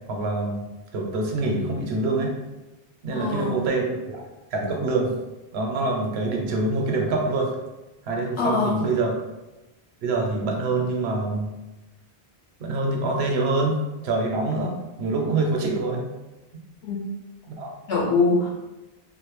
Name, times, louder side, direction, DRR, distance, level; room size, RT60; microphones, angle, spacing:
voice 1, 0.1-0.6 0.9-2.3 3.0-4.2 4.5-5.1 5.5-7.5 8.0-9.1 10.0-11.5 12.6-13.8 14.0-16.0 17.5-17.7, right 2 dB, 80° right, 0 dB, 0.8 m, -25 dB
voice 2, 3.1-3.6 8.4-8.8 16.8-17.0 17.9-18.5, left 3 dB, 75° left, -4 dB, 1.0 m, -23 dB
2.5 x 2.1 x 3.0 m, 1.0 s
omnidirectional pair, 1.1 m